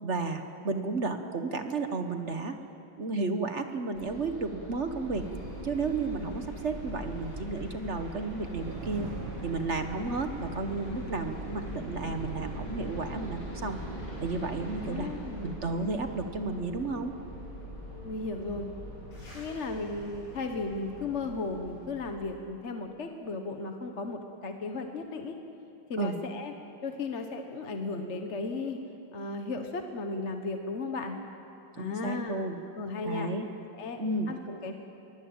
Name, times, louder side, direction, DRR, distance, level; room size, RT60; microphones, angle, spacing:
voice 1, 0.0-2.6 3.0-5.3 5.6-9.1 9.4-13.8 14.2-15.1 15.4-17.2 26.0-26.2 31.8-32.6 33.0-33.5 34.0-34.3, right 3 dB, 45° right, 7 dB, 1.2 m, -32 dB
sound 1, 3.9-22.1, equal, 60° left, 8.0 m, -44 dB
sound 2, 4.8-21.4, right 1 dB, 20° right, 8.0 m, -43 dB
sound 3, 7.7-10.5, right 5 dB, 85° right, 2.3 m, -43 dB
voice 2, 14.8-15.6 18.0-18.7 19.3-25.3 25.9-26.5 26.8-28.8 29.1-31.2 31.7-32.5 32.8-33.5 33.8-34.0 34.3-34.7, left 3 dB, 40° left, 5 dB, 1.4 m, -35 dB
23.0 x 19.0 x 8.8 m, 2.9 s
omnidirectional pair, 2.2 m